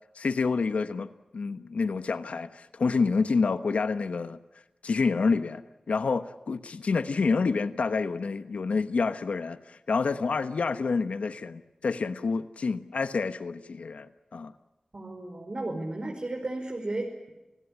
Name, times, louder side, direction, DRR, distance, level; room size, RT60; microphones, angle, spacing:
voice 1, 0.1-4.4 4.8-14.5, left 4 dB, 85° left, 11 dB, 1.1 m, -28 dB
voice 2, 14.9-17.3, right 2 dB, 50° right, 1 dB, 5.2 m, -34 dB
29.5 x 17.0 x 9.9 m, 1.0 s
cardioid pair, 45°, 2 cm